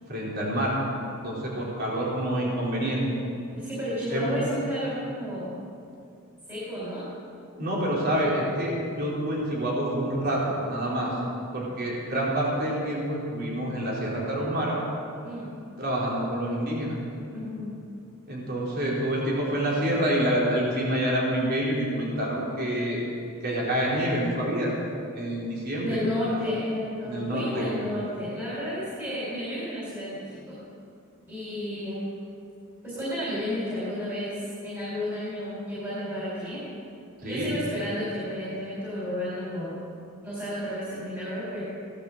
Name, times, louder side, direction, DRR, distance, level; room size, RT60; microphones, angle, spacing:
voice 1, 0.1-0.7 1.2-3.0 4.1-4.3 7.6-11.1 11.5-14.8 15.8-17.0 18.3-23.0 23.4-24.7 25.1-26.0 27.0-27.7 37.2-37.6, right 1 dB, 45° right, -5 dB, 4.3 m, -27 dB
voice 2, 3.5-5.5 6.5-7.1 15.2-15.5 17.3-17.7 25.8-30.6 31.3-32.1 32.8-36.6 37.2-39.8 40.2-41.6, left 1 dB, 10° right, -9 dB, 4.2 m, -32 dB
17.0 x 11.5 x 7.5 m, 2.4 s
head